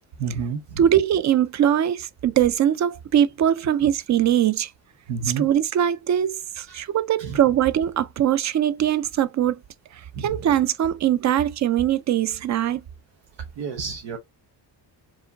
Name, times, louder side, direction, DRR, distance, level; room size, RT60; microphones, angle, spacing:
voice 1, 0.2-0.8 5.1-5.5 6.7-6.8 7.2-7.4 10.1-10.4 13.6-14.2, right 5 dB, 90° right, 1.0 m, -30 dB
voice 2, 0.8-4.7 5.4-9.6 10.2-12.8, right 10 dB, 40° right, 0.4 m, -21 dB
4.7 x 3.0 x 2.7 m
cardioid pair, 135°, 43 cm